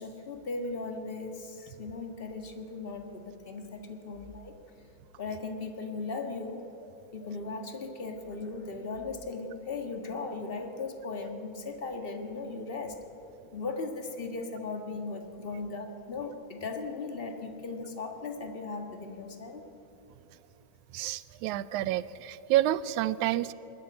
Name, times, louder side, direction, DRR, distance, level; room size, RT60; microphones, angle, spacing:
voice 1, 0.0-4.6 5.2-6.6 7.1-13.0 13.5-19.6, left 3 dB, 35° left, 5 dB, 0.9 m, -37 dB
voice 2, 20.9-23.5, right 14 dB, 85° right, 17 dB, 2.0 m, -29 dB
21.0 x 13.5 x 9.5 m, 2.9 s
omnidirectional pair, 3.4 m